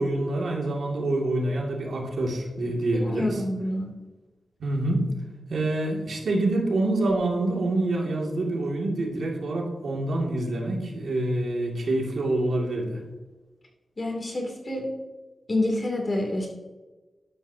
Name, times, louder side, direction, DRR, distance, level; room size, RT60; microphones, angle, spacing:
voice 1, 0.0-3.4 4.6-5.1 5.5-13.0, right 2 dB, 75° right, -1 dB, 2.3 m, -26 dB
voice 2, 2.9-3.9 14.0-14.9 15.5-16.5, left 1 dB, 35° left, 0 dB, 2.7 m, -28 dB
12.0 x 11.5 x 2.8 m, 1.2 s
wide cardioid pair, 125°, 0 cm